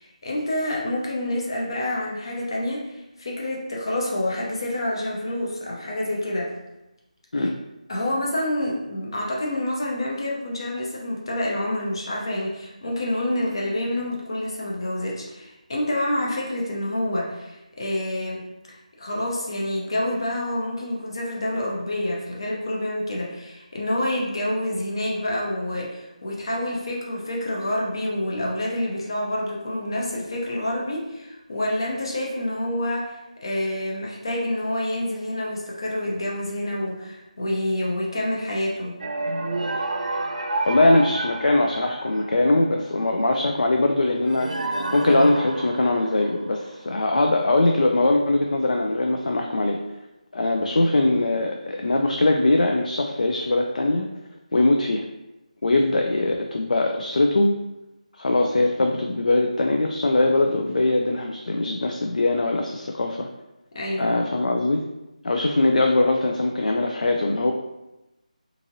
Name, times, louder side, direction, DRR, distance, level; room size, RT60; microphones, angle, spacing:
voice 1, 0.0-6.5 7.4-7.5 7.9-18.4 18.7-39.0 63.7-64.2, left 1 dB, 40° left, -3 dB, 0.6 m, -28 dB
sound 1, 39.0-42.7 44.3-46.9, right 2 dB, 65° right, 0.3 m, -30 dB
voice 2, 40.7-49.8 50.3-54.1 54.5-55.1 55.6-57.6 58.1-63.3 64.0-64.8 65.2-67.5, left 2 dB, 85° left, 2 dB, 0.3 m, -21 dB
2.8 x 2.5 x 2.6 m, 0.98 s
figure-of-eight pair, 175°, 4 cm